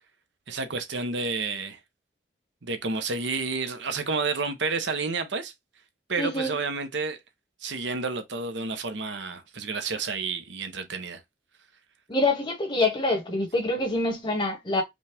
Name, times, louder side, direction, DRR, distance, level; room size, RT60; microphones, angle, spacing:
voice 1, 0.5-1.8 2.6-5.5 6.1-7.2 7.6-11.2, right 4 dB, 75° right, 0.9 m, -30 dB
voice 2, 6.2-6.6 12.1-14.8, left 2 dB, 25° left, 1.5 m, -26 dB
5.2 x 2.4 x 3.4 m
head